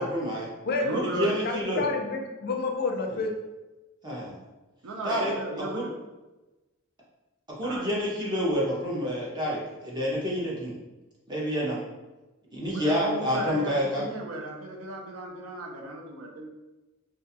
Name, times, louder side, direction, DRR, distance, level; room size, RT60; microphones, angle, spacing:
voice 1, 0.0-0.5 0.9-1.9 3.1-3.2 4.0-4.4 5.0-5.3 5.7-5.8 7.6-10.7 11.3-11.8 12.5-14.1, equal, 20° right, -5 dB, 0.6 m, -28 dB
voice 2, 0.8-1.3 4.8-5.9 7.6-7.9 12.7-16.5, right 1 dB, 90° right, 0 dB, 0.5 m, -35 dB
voice 3, 1.4-3.3, left 3 dB, 50° left, 3 dB, 0.4 m, -29 dB
2.3 x 2.3 x 2.7 m, 1.1 s
head